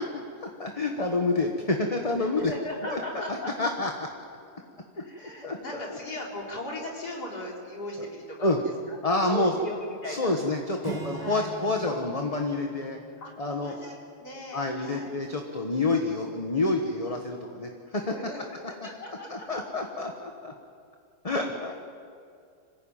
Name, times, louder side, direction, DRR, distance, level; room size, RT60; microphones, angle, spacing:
voice 1, 0.4-2.5 2.8-3.9 5.0-5.1 5.4-6.0 8.4-8.6 9.0-9.5 10.1-13.0 13.4-13.7 14.5-18.0 19.3-20.5 21.2-21.7, left 2 dB, 25° left, 3 dB, 1.3 m, -28 dB
voice 2, 2.2-3.7 4.9-8.6 8.9-9.0 9.2-10.3 11.1-11.5 13.2-15.1 18.1-19.5, left 1 dB, 65° left, -2 dB, 4.4 m, -38 dB
Acoustic guitar / Strum, 10.8-14.3, right 5 dB, 80° right, 2.5 m, -42 dB
25.5 x 16.0 x 8.9 m, 2.3 s
omnidirectional pair, 1.8 m